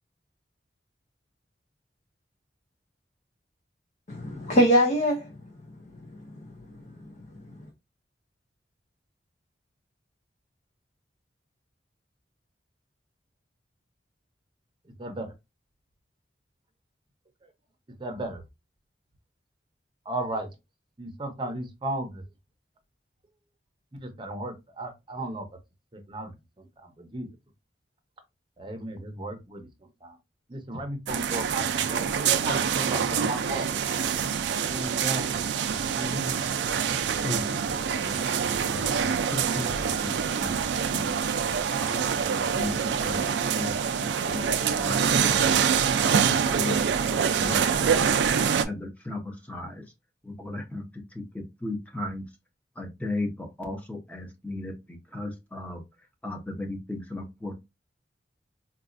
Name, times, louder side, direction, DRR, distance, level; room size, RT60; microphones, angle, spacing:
voice 1, 4.1-5.5 5.8-5.9 6.1-7.4, equal, 45° left, 0.5 m, -25 dB
voice 2, 18.0-18.4 20.1-20.5 21.0-22.2 24.0-25.5 26.1-26.3 27.1-27.3 28.6-29.7 30.0-30.1 30.5-32.0 32.4-33.7 34.7-35.3 35.9-36.4, right 1 dB, 30° right, 0.7 m, -34 dB
sound 1, 31.1-48.6, right 7 dB, 75° right, 0.4 m, -25 dB
voice 3, 37.2-41.1 41.8-43.2 43.5-45.6 46.0-46.8 47.1-49.8 50.2-52.3 52.8-55.8 56.2-57.7, left 2 dB, 10° left, 0.8 m, -36 dB
4.0 x 2.3 x 2.4 m
head